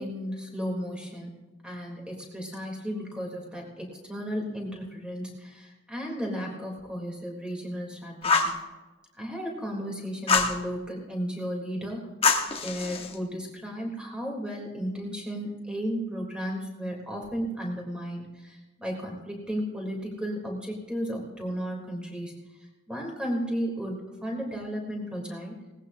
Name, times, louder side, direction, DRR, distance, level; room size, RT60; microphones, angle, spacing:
voice 1, 0.0-8.6 9.2-12.0 12.6-25.6, equal, 5° right, -1 dB, 3.5 m, -34 dB
Fire, 8.2-8.6 10.3-10.6 12.2-13.1, left 4 dB, 30° left, 1.4 m, -24 dB
20.5 x 19.0 x 2.8 m, 1.2 s
head